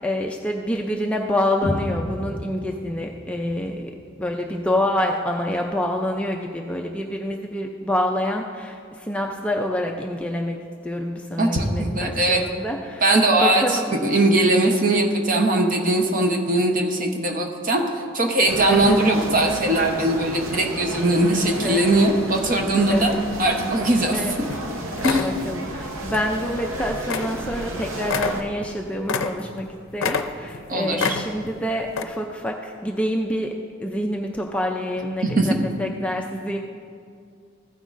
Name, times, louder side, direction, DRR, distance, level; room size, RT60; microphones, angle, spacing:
voice 1, 0.0-3.9 4.2-13.9 18.7-19.0 21.6-21.8 22.9-23.2 24.1-24.4 25.0-29.7 29.9-33.5 33.8-36.6, left 1 dB, 5° left, 1 dB, 0.3 m, -27 dB
sound 1, 1.6-5.6, equal, 15° right, 1.6 m, -34 dB
voice 2, 11.4-12.4 13.0-17.8 18.1-23.1 23.4-24.2 25.0-25.3 30.7-31.1 35.2-35.5, right 1 dB, 40° right, 3 dB, 0.8 m, -20 dB
sound 2, 18.5-28.4, right 1 dB, 75° right, 0.8 m, -32 dB
sound 3, 24.1-24.2 24.5-24.7 25.0-25.4 26.1-26.3 26.6-26.7 27.1-27.4 27.6-27.7 28.0-29.7 30.0-30.6 31.0-31.5 31.9-32.0, left 5 dB, 75° left, 0.5 m, -27 dB
15.0 x 9.1 x 2.5 m, 2.2 s
head